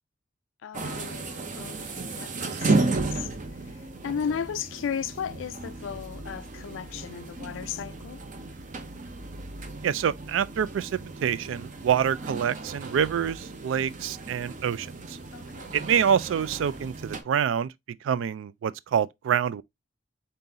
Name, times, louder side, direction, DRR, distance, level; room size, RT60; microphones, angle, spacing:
voice 1, 0.6-3.3 3.7-8.2 15.3-15.8, left 7 dB, 75° left, 0.3 m, -35 dB
sound 1, 0.7-17.2, right 3 dB, 45° right, 0.6 m, -34 dB
voice 2, 9.8-15.2 15.7-17.7 18.0-19.6, right 8 dB, 80° right, 0.3 m, -26 dB
3.9 x 3.8 x 2.7 m
head